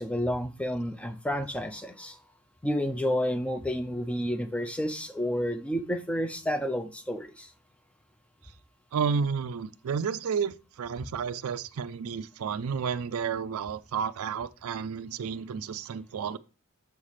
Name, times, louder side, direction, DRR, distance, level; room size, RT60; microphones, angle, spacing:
voice 1, 0.0-2.2 2.6-7.5, equal, 5° left, 0.4 m, -30 dB
voice 2, 8.9-16.4, right 6 dB, 70° right, 0.4 m, -31 dB
7.2 x 3.2 x 5.7 m
head